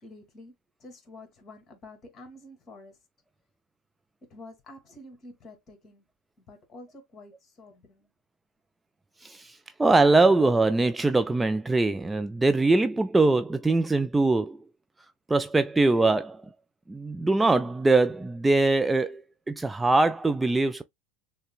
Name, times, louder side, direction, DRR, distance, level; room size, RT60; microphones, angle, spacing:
voice 1, 0.0-0.5 0.8-3.0 4.2-6.0 6.4-8.1, left 2 dB, 35° left, 1.8 m, -48 dB
voice 2, 9.2-14.6 15.3-16.4 16.9-19.2 19.5-20.8, right 2 dB, 10° right, 0.3 m, -22 dB
6.4 x 2.2 x 2.3 m
hypercardioid pair, 75°, 0 cm